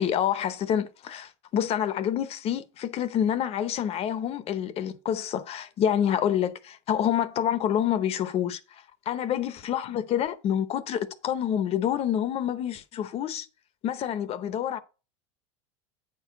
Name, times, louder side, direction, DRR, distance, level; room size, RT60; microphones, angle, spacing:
voice 1, 0.0-13.5 13.8-14.8, left 9 dB, 40° left, 0.7 m, -27 dB
8.6 x 4.6 x 5.0 m
supercardioid pair, 120°, 16 cm